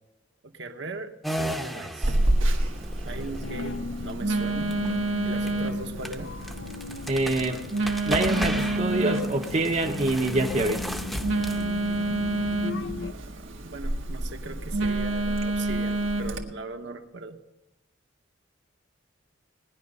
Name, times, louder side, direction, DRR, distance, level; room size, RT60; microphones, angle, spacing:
voice 1, 0.4-2.2 3.0-4.8 5.2-6.4 13.0-17.4, right 2 dB, 65° right, 5 dB, 1.1 m, -39 dB
sound 1, 1.2-15.5, equal, ahead, 0.8 m, -37 dB
Telephone, 2.0-16.4, right 2 dB, 90° right, 1.5 m, -28 dB
sound 2, 3.1-13.1, left 3 dB, 65° left, 0.6 m, -38 dB
voice 2, 7.1-7.6 8.1-10.9, right 2 dB, 35° right, 3 dB, 0.8 m, -25 dB
18.5 x 10.5 x 5.4 m, 1.0 s
head